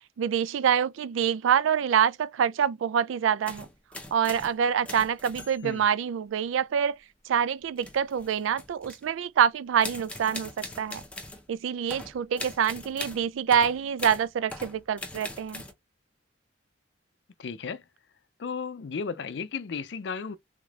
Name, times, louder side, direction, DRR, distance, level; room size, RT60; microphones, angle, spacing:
voice 1, 0.2-3.7 4.1-7.0 7.3-11.0 11.5-15.6, right 8 dB, 90° right, 0.3 m, -26 dB
sound 1, 3.4-4.6 4.8-5.8 7.8-9.1 9.8-11.4 11.9-15.7, left 2 dB, 5° left, 0.7 m, -41 dB
voice 2, 17.4-17.8 18.4-20.4, left 5 dB, 65° left, 0.4 m, -34 dB
3.6 x 3.2 x 2.4 m
head